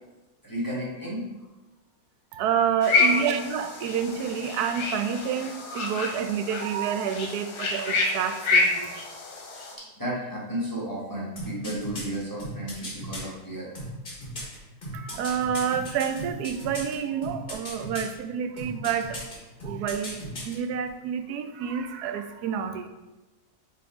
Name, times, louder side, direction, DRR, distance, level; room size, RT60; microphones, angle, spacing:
voice 1, 0.4-1.2 2.9-3.2 9.8-13.7, right 1 dB, 15° left, -7 dB, 1.6 m, -33 dB
voice 2, 2.3-9.0 14.9-19.2 19.6-22.9, right 7 dB, 75° right, 8 dB, 1.1 m, -29 dB
sound 1, 2.8-9.7, left 3 dB, 70° left, 1.4 m, -28 dB
sound 2, 11.4-13.2 13.7-17.0 17.2-18.1 18.6-19.3 19.6-20.6 20.9-21.0, equal, 30° left, 1.7 m, -37 dB
5.8 x 3.8 x 4.8 m, 1.1 s
omnidirectional pair, 1.7 m